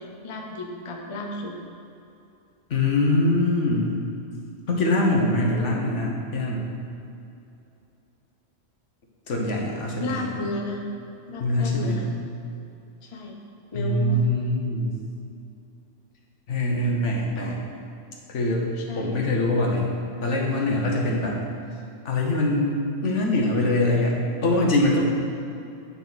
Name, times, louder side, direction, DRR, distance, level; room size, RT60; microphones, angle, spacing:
voice 1, 0.0-1.6 10.0-10.8 11.3-12.1 13.0-13.4 13.7-14.3 17.4-17.6 18.8-19.2, left 2 dB, 30° left, 1 dB, 0.7 m, -33 dB
voice 2, 2.7-3.9 4.7-6.7 9.3-10.2 11.4-12.0 13.7-14.9 16.5-17.6 18.3-18.6 18.9-20.0 20.2-21.4 22.0-22.7 23.0-25.0, left 2 dB, 70° left, -1 dB, 1.4 m, -23 dB
9.4 x 5.4 x 4.1 m, 2.7 s
omnidirectional pair, 1.3 m